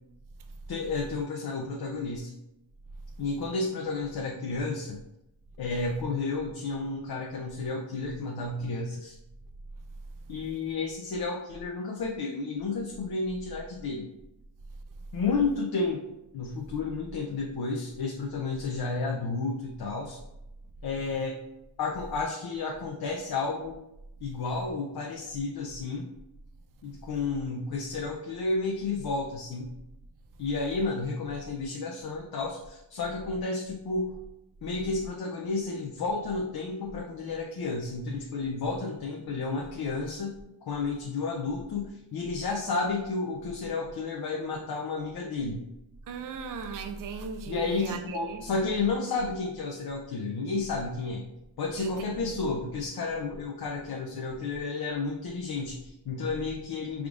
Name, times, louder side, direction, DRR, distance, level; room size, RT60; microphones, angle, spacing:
voice 1, 0.7-2.3 3.2-5.0 5.6-9.1 10.3-14.1 15.1-16.1 16.3-20.2 20.8-21.4 21.8-23.8 24.2-26.1 26.8-29.7 30.4-34.2 34.6-40.4 40.6-45.6 47.5-51.3 51.6-57.1, left 3 dB, 50° left, 0 dB, 0.5 m, -31 dB
voice 2, 46.1-48.4 51.8-52.3, right 5 dB, 45° right, 6 dB, 0.5 m, -37 dB
4.8 x 3.6 x 2.4 m, 0.88 s
wide cardioid pair, 150°, 47 cm